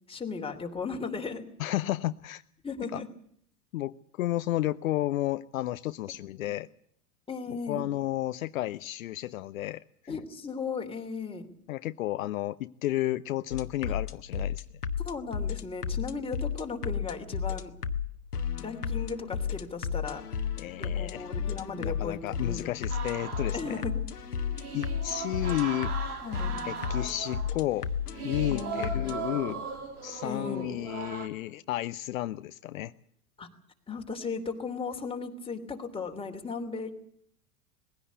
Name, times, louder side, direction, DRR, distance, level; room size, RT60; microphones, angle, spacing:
voice 1, 0.1-1.4 2.6-3.1 6.3-6.5 7.3-7.8 10.1-11.5 13.8-13.9 15.0-17.7 18.6-20.2 20.8-22.8 23.5-24.1 26.1-26.6 28.5-29.0 30.2-30.7 33.4-33.5 33.9-37.0, left 4 dB, 10° left, 3 dB, 3.1 m, -36 dB
voice 2, 1.6-2.4 2.9-3.0 3.7-6.7 7.7-10.2 11.7-14.6 20.6-21.2 21.8-23.8 24.7-25.9 26.6-27.9 28.2-29.7 30.0-32.9, left 15 dB, 60° left, 13 dB, 0.7 m, -32 dB
sound 1, 13.5-29.2, left 7 dB, 85° left, 1.3 m, -34 dB
sound 2, 22.9-31.3, right 5 dB, 75° right, 3.5 m, -38 dB
20.5 x 16.5 x 8.4 m, 0.68 s
figure-of-eight pair, 95°, 45 cm